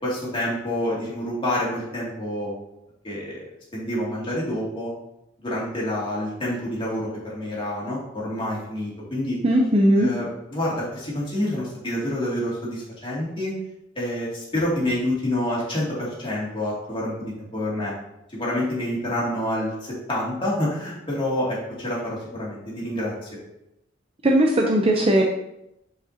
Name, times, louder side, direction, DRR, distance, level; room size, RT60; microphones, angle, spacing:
voice 1, 0.0-2.5 3.0-3.4 3.7-4.9 5.4-9.4 10.0-13.5 14.0-17.9 18.3-23.3, left 1 dB, 30° left, -6 dB, 2.4 m, -28 dB
voice 2, 9.4-10.1 24.2-25.2, right 1 dB, 30° right, 1 dB, 0.6 m, -18 dB
8.1 x 5.0 x 2.8 m, 0.84 s
head